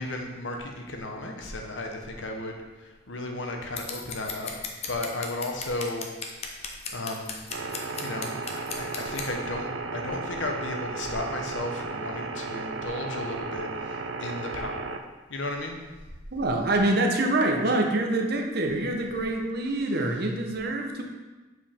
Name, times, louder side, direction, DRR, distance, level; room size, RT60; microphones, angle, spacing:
voice 1, 0.0-4.5 4.9-6.1 6.4-7.3 8.0-15.0 15.3-15.8, left 2 dB, 90° left, 2 dB, 1.0 m, -34 dB
Scissors, 3.8-9.3, left 5 dB, 35° left, 0.7 m, -36 dB
sound 1, 7.5-15.0, right 3 dB, 85° right, 0.5 m, -34 dB
voice 2, 16.3-21.0, right 2 dB, 55° right, 2 dB, 0.9 m, -25 dB
7.4 x 4.6 x 3.6 m, 1.2 s
head